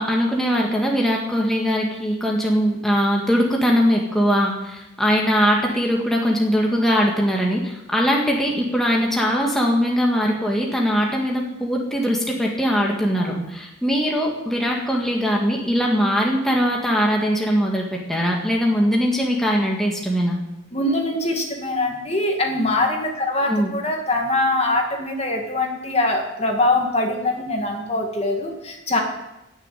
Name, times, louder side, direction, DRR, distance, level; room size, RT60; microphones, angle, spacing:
voice 1, 0.0-20.4 23.5-23.7, equal, ahead, -1 dB, 1.8 m, -21 dB
voice 2, 20.7-29.0, left 2 dB, 30° left, 2 dB, 2.1 m, -23 dB
17.0 x 6.9 x 9.2 m, 0.92 s
head